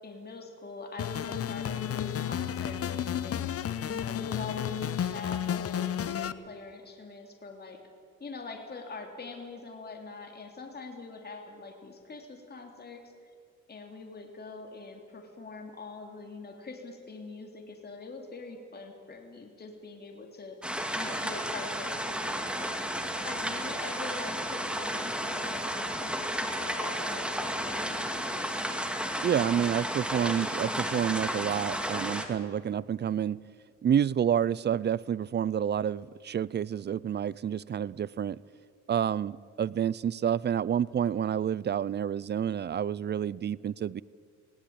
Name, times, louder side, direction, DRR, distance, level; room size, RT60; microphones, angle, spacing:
voice 1, 0.0-7.8 8.2-13.1 13.7-20.6 21.0-22.8 23.2-28.6, left 3 dB, 35° left, 2 dB, 3.0 m, -44 dB
sound 1, 1.0-6.3, left 9 dB, 50° left, 0.8 m, -32 dB
sound 2, 20.6-32.2, equal, 5° right, 2.3 m, -33 dB
voice 2, 29.2-33.4 33.8-38.4 38.9-44.0, right 9 dB, 35° right, 22 dB, 0.5 m, -29 dB
18.5 x 17.5 x 8.8 m, 2.2 s
cardioid pair, 90°, 30 cm